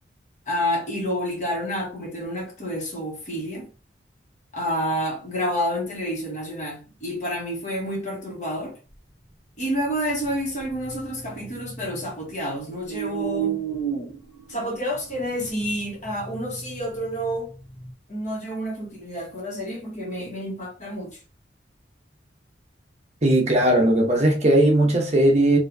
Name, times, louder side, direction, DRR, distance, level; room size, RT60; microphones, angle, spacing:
voice 1, 0.5-3.7 4.5-8.7 9.6-13.7 14.5-17.5 18.1-21.1, equal, 40° left, 1.3 m, -29 dB
sound 1, 9.7-12.3 12.7-17.9, right 8 dB, 70° left, 1.4 m, -34 dB
voice 2, 23.2-25.6, right 1 dB, 35° right, 0.9 m, -18 dB
4.3 x 2.6 x 2.7 m
head